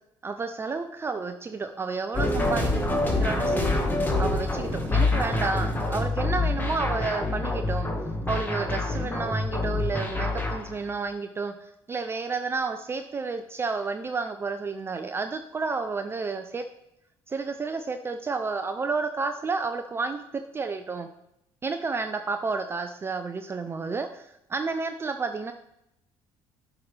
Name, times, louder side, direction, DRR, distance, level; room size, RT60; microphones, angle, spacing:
voice 1, 0.2-2.9 3.2-3.7 4.2-7.9 8.3-16.6 17.3-20.2 20.5-21.1 21.6-25.5, right 4 dB, 25° right, 7 dB, 0.5 m, -31 dB
sound 1, 2.1-10.7, left 2 dB, 20° left, 1.6 m, -26 dB
9.7 x 6.0 x 3.3 m, 0.82 s
cardioid pair, 105°, 10 cm